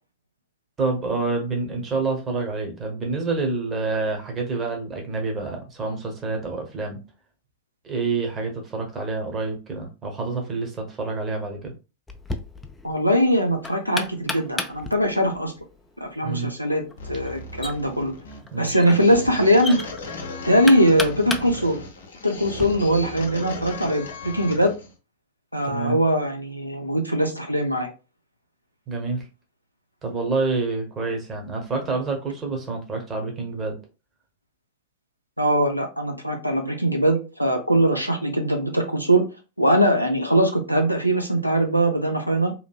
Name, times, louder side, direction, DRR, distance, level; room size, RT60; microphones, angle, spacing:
voice 1, 0.8-7.0 7.8-11.7 16.2-16.5 18.5-18.8 25.6-26.0 28.9-29.3 30.0-33.8, right 3 dB, 20° right, 2 dB, 0.9 m, -27 dB
Knock, 12.1-22.7, left 2 dB, 10° left, 0.3 m, -35 dB
voice 2, 12.8-15.5 16.0-18.1 18.6-19.8 20.4-21.8 22.2-24.7 25.5-27.9 35.4-39.2 39.6-42.5, equal, 90° right, 4 dB, 0.4 m, -21 dB
sound 1, 17.0-24.9, left 2 dB, 65° left, 0.6 m, -36 dB
2.9 x 2.6 x 2.3 m, 0.31 s
figure-of-eight pair, 90°, 0 cm